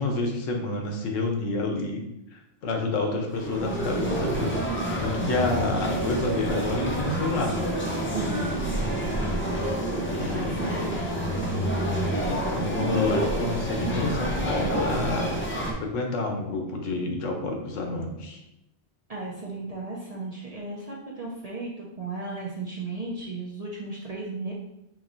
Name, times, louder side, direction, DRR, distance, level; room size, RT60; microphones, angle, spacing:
voice 1, 0.0-2.0 2.3-7.6 10.1-10.7 12.2-15.4 15.7-18.4, left 2 dB, 85° left, 2 dB, 1.1 m, -29 dB
sound 1, 3.3-15.7, right 1 dB, 20° left, 0.3 m, -28 dB
voice 2, 8.1-8.6 10.2-11.0 19.1-24.5, right 3 dB, 45° right, -3 dB, 0.5 m, -35 dB
5.1 x 3.0 x 2.6 m, 0.85 s
omnidirectional pair, 1.3 m